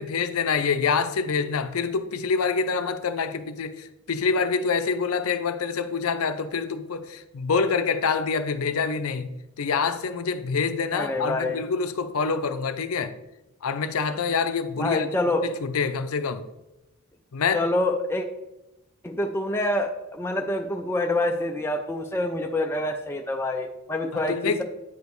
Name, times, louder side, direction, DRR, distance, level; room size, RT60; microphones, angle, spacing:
voice 1, 0.0-13.1 13.6-15.1 15.4-16.5 17.3-17.7 24.1-24.6, left 5 dB, 75° left, 0.5 m, -26 dB
voice 2, 10.9-11.6 14.8-15.4 17.5-18.3 19.0-24.6, left 1 dB, 10° left, 0.4 m, -26 dB
9.3 x 5.1 x 3.1 m
head